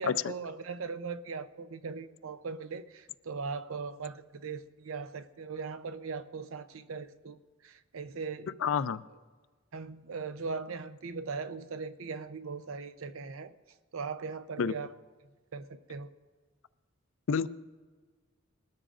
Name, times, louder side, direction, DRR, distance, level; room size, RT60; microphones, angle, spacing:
voice 1, 0.0-8.6 9.7-13.5 13.9-14.9 15.5-16.1, right 5 dB, 85° right, 0.6 m, -39 dB
voice 2, 8.6-9.0 14.6-14.7 17.3-17.5, left 6 dB, 70° left, 0.4 m, -28 dB
20.5 x 13.5 x 2.5 m
head